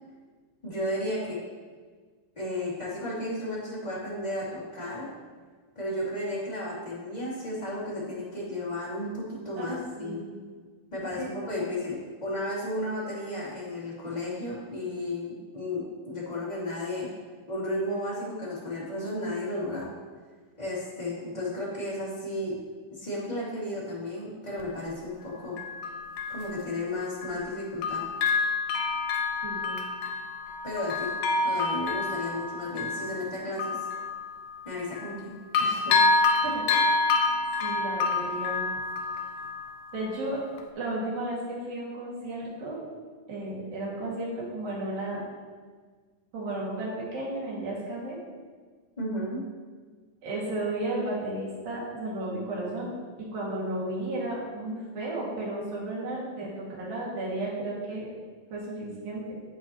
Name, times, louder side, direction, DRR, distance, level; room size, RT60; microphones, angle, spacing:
voice 1, 0.6-1.4 2.4-5.1 5.7-10.2 10.9-17.1 17.5-19.9 20.6-22.6 22.9-25.6 26.3-28.0 30.6-31.1 31.4-33.8 34.6-36.0 49.0-49.4, left 1 dB, 15° left, -9 dB, 2.3 m, -33 dB
voice 2, 9.6-10.3 11.2-11.6 29.4-29.8 36.4-36.7 37.6-38.7 39.9-40.4 40.8-42.8 43.3-45.2 46.3-48.2 50.2-52.9 53.3-58.1 58.5-59.4, right 1 dB, 85° right, -5 dB, 3.9 m, -33 dB
Bell, 24.6-24.7 25.6-27.5 27.8-35.2 35.5-40.2 40.6-40.7, left 3 dB, 75° left, 1.9 m, -28 dB
10.0 x 8.0 x 3.0 m, 1.5 s
omnidirectional pair, 4.0 m